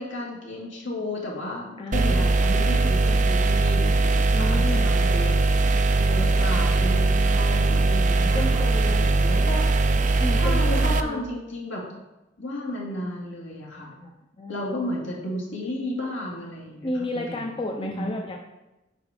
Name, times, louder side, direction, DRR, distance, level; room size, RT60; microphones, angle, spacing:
voice 1, 0.0-5.6 5.9-9.7 10.4-11.8 12.4-13.9 14.5-17.4 17.8-18.1, left 1 dB, 70° left, -3 dB, 2.2 m, -33 dB
voice 2, 1.8-2.3 3.0-3.2 4.3-4.9 7.5-8.0 8.3-9.1 10.2-11.3 14.0-14.6 16.8-18.4, left 2 dB, 25° left, 1 dB, 0.6 m, -32 dB
sound 1, 1.9-11.0, right 3 dB, 40° right, 0.5 m, -20 dB
8.4 x 4.9 x 5.0 m, 0.97 s
head